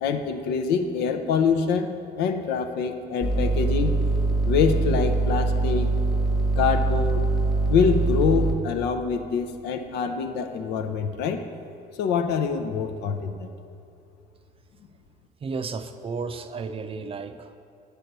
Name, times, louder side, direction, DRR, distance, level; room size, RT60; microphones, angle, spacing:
voice 1, 0.0-1.9 2.2-4.0 4.5-5.9 6.6-7.3 7.7-11.4 12.0-13.5, left 6 dB, 85° left, 7 dB, 0.6 m, -25 dB
sound 1, 3.2-8.5, right 3 dB, ahead, 0.9 m, -23 dB
voice 2, 15.4-17.6, right 4 dB, 35° right, 9 dB, 0.5 m, -33 dB
8.3 x 4.5 x 6.6 m, 2.6 s
cardioid pair, 110°, 17 cm